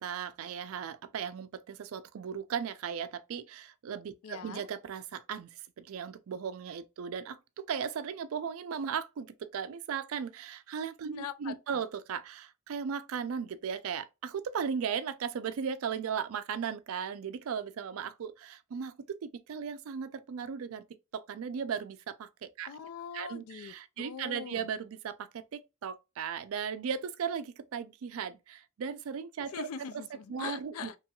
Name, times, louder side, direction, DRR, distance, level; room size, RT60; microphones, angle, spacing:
voice 1, 0.0-20.8 21.1-22.7 23.1-29.6 30.3-30.9, right 7 dB, 70° right, 0.4 m, -37 dB
voice 2, 4.2-4.7 11.1-11.8 22.7-24.7 29.5-31.0, left 7 dB, 80° left, 0.4 m, -42 dB
3.0 x 2.9 x 2.3 m
head